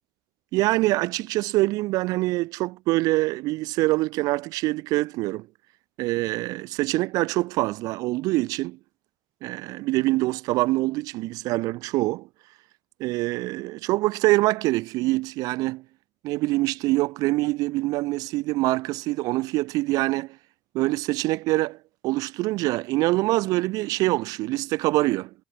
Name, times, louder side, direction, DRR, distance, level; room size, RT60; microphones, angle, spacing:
voice 1, 0.5-5.5 6.0-8.8 9.4-12.3 13.0-15.8 16.2-20.4 20.7-21.8 22.0-25.3, right 20 dB, 70° right, 4.1 m, -25 dB
hypercardioid pair, 65°, 6 cm